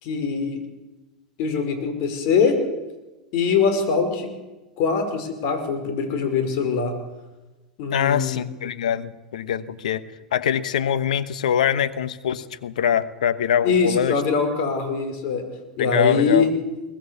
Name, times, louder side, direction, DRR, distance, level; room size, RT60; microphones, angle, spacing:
voice 1, 0.0-0.6 1.4-2.6 3.3-4.3 4.8-6.9 7.8-8.4 13.6-15.4 15.8-16.5, left 5 dB, 55° left, 6 dB, 5.1 m, -22 dB
voice 2, 7.9-10.0 10.3-14.2 15.8-16.5, left 8 dB, 75° left, 13 dB, 1.2 m, -23 dB
22.5 x 18.5 x 7.1 m, 1.1 s
hypercardioid pair, 90°, 4 cm